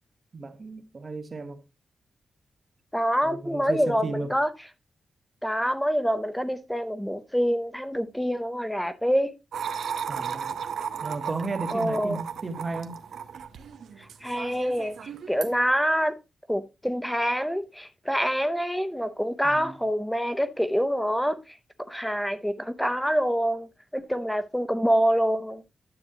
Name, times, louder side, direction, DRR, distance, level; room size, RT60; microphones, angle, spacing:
voice 1, 0.3-1.6 3.2-4.3 10.1-10.6 11.0-13.0 19.4-19.8, right 3 dB, 30° right, 1.1 m, -34 dB
voice 2, 2.9-4.5 5.4-9.3 11.7-12.2 14.2-14.9 15.3-16.1 16.5-21.4 21.9-23.7 23.9-25.6, equal, ahead, 0.6 m, -26 dB
sound 1, 9.5-15.6, right 7 dB, 80° right, 0.8 m, -35 dB
9.9 x 7.6 x 2.8 m
wide cardioid pair, 165°, 0 cm